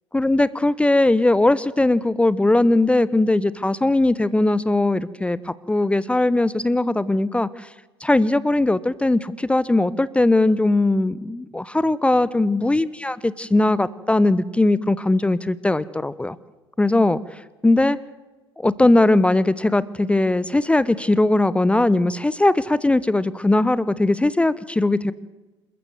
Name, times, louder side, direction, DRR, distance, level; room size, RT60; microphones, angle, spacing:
voice 1, 0.1-7.7 8.0-16.4 16.8-18.0 18.6-25.1, left 2 dB, 10° left, 19 dB, 0.6 m, -19 dB
27.5 x 14.0 x 7.6 m, 1.1 s
figure-of-eight pair, 65°, 14 cm